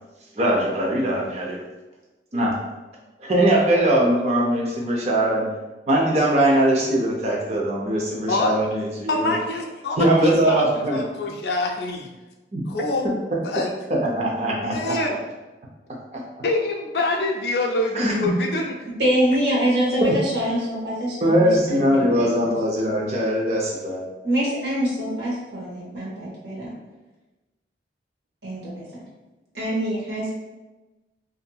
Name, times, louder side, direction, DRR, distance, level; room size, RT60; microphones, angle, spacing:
voice 1, 0.4-1.6 2.3-2.5 3.2-5.5 5.9-9.3 10.0-11.0 12.5-12.6 13.3-13.4 13.9-14.9 16.1-16.2 17.9-18.3 20.0-20.2 21.2-24.0, right 1 dB, 40° right, -2 dB, 0.5 m, -21 dB
voice 2, 8.3-8.7 9.1-12.1 12.7-13.1 13.4-13.7 14.7-15.2 16.4-18.8, left 2 dB, 65° left, 1 dB, 0.4 m, -25 dB
voice 3, 19.0-22.6 24.2-26.7 28.4-29.0 29.5-30.3, equal, 75° right, -5 dB, 1.0 m, -25 dB
2.7 x 2.5 x 2.3 m, 1.1 s
head